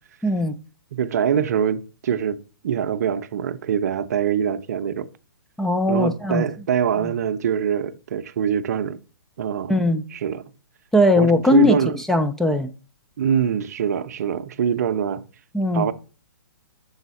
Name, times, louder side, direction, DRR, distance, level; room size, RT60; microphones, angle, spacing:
voice 1, 0.2-0.5 5.6-6.4 7.0-7.1 9.7-10.0 10.9-12.7 15.5-15.9, left 1 dB, 5° left, 0.3 m, -19 dB
voice 2, 0.9-2.4 2.6-5.1 5.9-9.0 9.4-9.8 10.1-10.5 11.2-12.0 13.2-15.2 15.7-15.9, right 8 dB, 50° right, 0.6 m, -24 dB
7.1 x 3.9 x 5.2 m
figure-of-eight pair, 125°, 11 cm